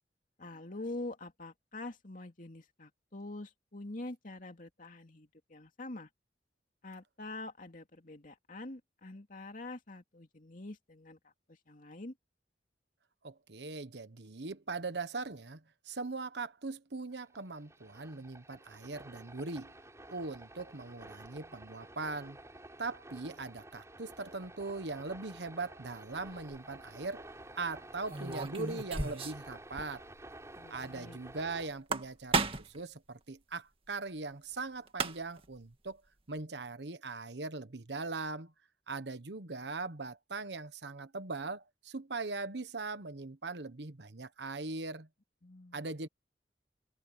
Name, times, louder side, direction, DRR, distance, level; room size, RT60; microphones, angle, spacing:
voice 1, 0.4-6.1 6.8-12.1 30.5-31.2 45.4-45.9, left 2 dB, 50° left, 2.7 m, -45 dB
voice 2, 13.2-19.7 20.1-22.4 22.8-27.3 27.5-30.0 30.7-36.0 36.3-38.5 38.9-45.1 45.7-46.1, right 3 dB, 75° right, 1.3 m, -40 dB
sound 1, 17.1-31.7, right 1 dB, 15° right, 6.7 m, -51 dB
sound 2, 26.2-26.6 28.1-29.5 29.8-29.9 30.2-30.3 31.7-32.8 34.6-34.7 34.9-35.5, right 3 dB, 30° right, 2.0 m, -34 dB
head